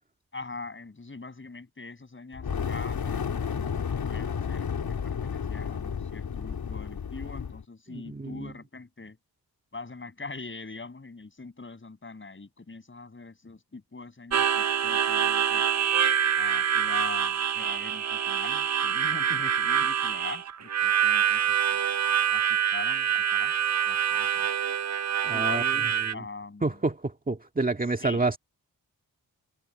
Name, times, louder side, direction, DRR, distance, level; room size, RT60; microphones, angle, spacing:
voice 1, 0.3-4.7 5.0-9.2 9.7-15.7 16.4-21.8 22.3-23.5 23.9-24.5 25.3-26.8 28.0-28.2, left 3 dB, 30° left, 7.9 m, -42 dB
Fire, 2.3-7.6, left 7 dB, 70° left, 3.3 m, -32 dB
voice 2, 7.9-8.5 25.2-25.6 26.0-26.2 26.6-28.4, right 3 dB, 25° right, 1.9 m, -29 dB
Harmonica, 14.3-26.1, right 9 dB, 45° right, 0.6 m, -25 dB
wide cardioid pair, 100°, 37 cm